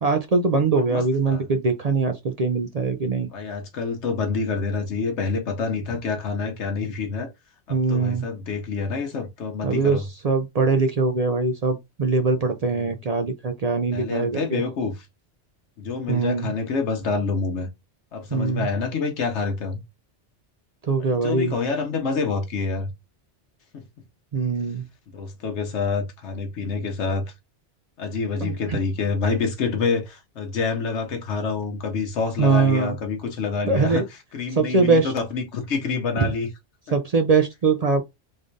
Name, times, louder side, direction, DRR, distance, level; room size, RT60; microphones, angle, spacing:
voice 1, 0.0-3.3 7.7-8.3 9.6-14.6 16.1-16.5 18.3-18.7 20.8-21.5 24.3-24.9 28.4-28.8 32.4-33.0 33.7-34.0 34.6-35.1 36.2-36.3 36.9-38.0, right 4 dB, 55° right, 0.4 m, -22 dB
voice 2, 0.9-1.5 3.3-7.3 7.7-10.1 12.7-13.0 13.9-15.1 15.8-17.7 18.1-19.8 21.0-22.9 23.7-23.8 25.1-27.3 28.0-36.5, left 4 dB, 80° left, 1.0 m, -27 dB
3.7 x 3.3 x 2.5 m
omnidirectional pair, 1.2 m